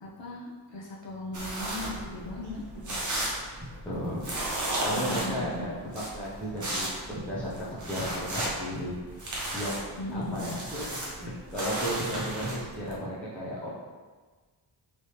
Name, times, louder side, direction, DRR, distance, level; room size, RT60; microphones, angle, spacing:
voice 1, 0.0-2.6 2.9-3.0 4.9-5.7 10.0-10.5, left 1 dB, 60° left, -4 dB, 0.7 m, -37 dB
sound 1, 1.3-12.9, right 1 dB, 35° right, 0.8 m, -35 dB
voice 2, 3.8-4.3 4.8-8.9 9.5-9.8 10.1-13.7, equal, 5° left, -9 dB, 0.6 m, -34 dB
3.3 x 3.0 x 3.0 m, 1.4 s
wide cardioid pair, 145°, 49 cm